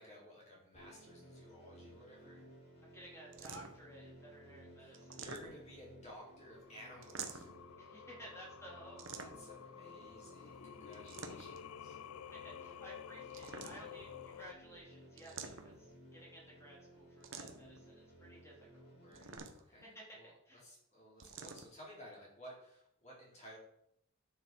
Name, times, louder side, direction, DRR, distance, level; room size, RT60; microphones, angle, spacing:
voice 1, 0.0-2.5 4.8-7.5 9.1-12.0 18.9-23.6, equal, 35° left, -5 dB, 4.3 m, -55 dB
sound 1, 0.7-19.4, right 1 dB, 50° left, 2.8 m, -58 dB
voice 2, 2.8-5.2 7.8-9.1 12.3-18.9 19.8-20.6, right 1 dB, 15° left, -3 dB, 3.3 m, -55 dB
sound 2, 3.3-3.9 4.9-5.8 7.0-7.6 9.0-9.6 10.9-11.7 13.3-14.1 15.2-15.9 17.2-17.8 19.1-19.8 21.2-21.7, right 5 dB, 65° right, 1.1 m, -48 dB
Singing, 6.3-14.5, left 9 dB, 80° left, 0.3 m, -52 dB
10.0 x 6.7 x 4.7 m, 0.74 s
head